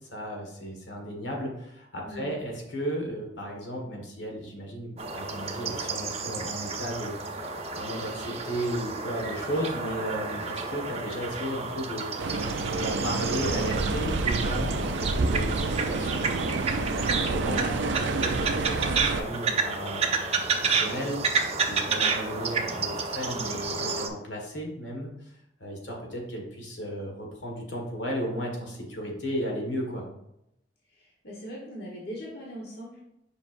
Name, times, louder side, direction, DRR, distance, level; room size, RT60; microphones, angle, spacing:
voice 1, 0.1-7.4 7.7-12.1 12.8-25.3 25.6-30.1, equal, 80° left, 0 dB, 1.6 m, -35 dB
voice 2, 2.0-2.4 30.9-33.0, equal, 60° left, -4 dB, 1.3 m, -40 dB
sound 1, 5.0-24.1, right 4 dB, 35° right, 0.7 m, -31 dB
sound 2, 12.2-19.2, right 3 dB, 85° right, 0.5 m, -28 dB
7.2 x 5.5 x 2.6 m, 0.82 s
head